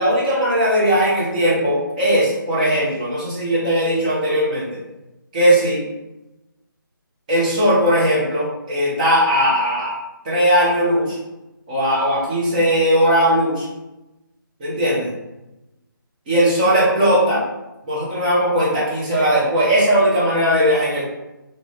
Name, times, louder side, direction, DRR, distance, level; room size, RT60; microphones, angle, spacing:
voice 1, 0.0-4.7 5.3-5.8 7.3-9.9 10.2-11.2 11.7-13.7 14.6-15.1 16.3-17.4 17.8-21.0, equal, 20° right, -7 dB, 0.8 m, -18 dB
2.6 x 2.4 x 3.3 m, 1.0 s
figure-of-eight pair, 160°, 12 cm